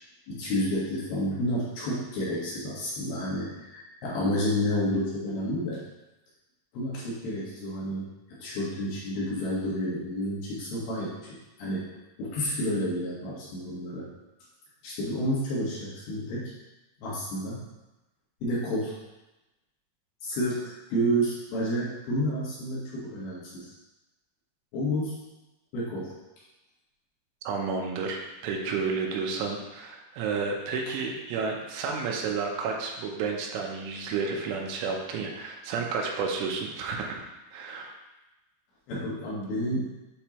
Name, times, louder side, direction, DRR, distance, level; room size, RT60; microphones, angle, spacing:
voice 1, 0.3-5.8 6.7-11.9 12.2-14.1 14.8-16.5 17.0-17.6 18.4-18.9 20.2-23.7 24.7-25.2 25.7-26.1 38.9-39.9, equal, 65° left, -7 dB, 3.1 m, -30 dB
voice 2, 27.4-37.2 37.5-37.9, right 5 dB, 85° right, 1 dB, 3.2 m, -31 dB
8.7 x 4.4 x 3.0 m, 1.0 s
omnidirectional pair, 5.4 m